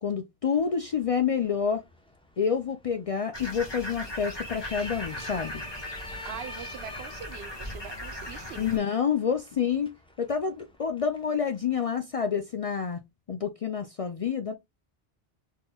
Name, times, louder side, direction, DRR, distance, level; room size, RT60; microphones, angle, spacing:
voice 1, 0.0-1.8 2.4-5.6 8.6-13.0 13.3-14.5, left 7 dB, 55° left, 0.4 m, -28 dB
sound 1, 0.5-11.8, left 1 dB, 5° left, 0.6 m, -47 dB
sound 2, 3.3-8.8, left 1 dB, 25° left, 1.2 m, -39 dB
voice 2, 6.2-8.7, right 8 dB, 80° right, 0.9 m, -42 dB
4.2 x 3.6 x 2.2 m
omnidirectional pair, 1.0 m